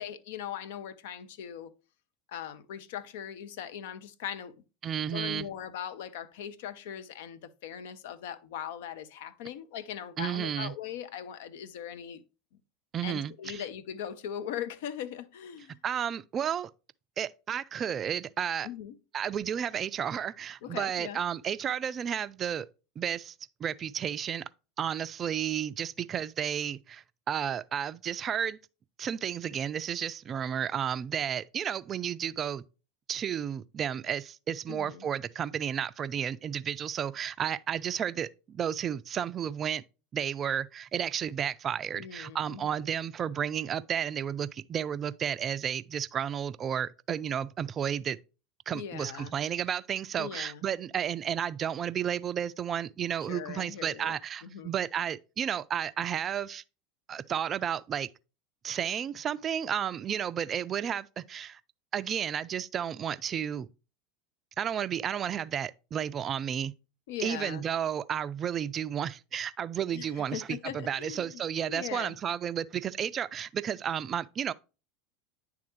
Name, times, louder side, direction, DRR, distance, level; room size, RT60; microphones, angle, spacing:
voice 1, 0.0-1.7 2.3-4.5 5.0-12.2 13.0-15.8 18.6-19.0 20.6-21.2 34.7-35.1 42.0-42.8 48.7-49.3 50.2-50.6 53.3-54.7 67.1-67.6 69.9-71.4 71.7-72.2, left 9 dB, 60° left, 0.5 m, -40 dB
voice 2, 4.8-5.5 10.2-10.7 12.9-13.6 15.8-16.7 17.2-18.7 19.1-22.7 23.0-23.3 23.6-24.4 24.8-28.6 29.0-32.6 33.1-39.8 40.1-48.2 48.7-56.6 57.1-58.1 58.6-61.6 61.9-63.7 64.6-66.7 67.2-74.5, right 8 dB, 35° right, 0.3 m, -32 dB
9.7 x 3.5 x 3.1 m
figure-of-eight pair, 80°, 0 cm